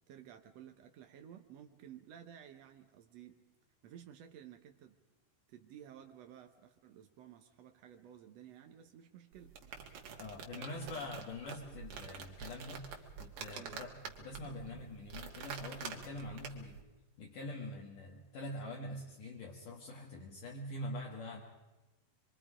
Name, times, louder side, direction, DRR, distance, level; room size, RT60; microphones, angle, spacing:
voice 1, 0.0-3.4 3.8-5.0 5.5-9.5 10.5-11.2 13.5-13.8, right 9 dB, 85° right, 5 dB, 1.4 m, -54 dB
sound 1, 9.3-16.8, right 6 dB, 65° right, 3.1 m, -47 dB
voice 2, 10.2-16.8 17.2-21.4, left 1 dB, 60° left, -1 dB, 3.0 m, -45 dB
25.5 x 23.5 x 5.0 m, 1.1 s
omnidirectional pair, 4.3 m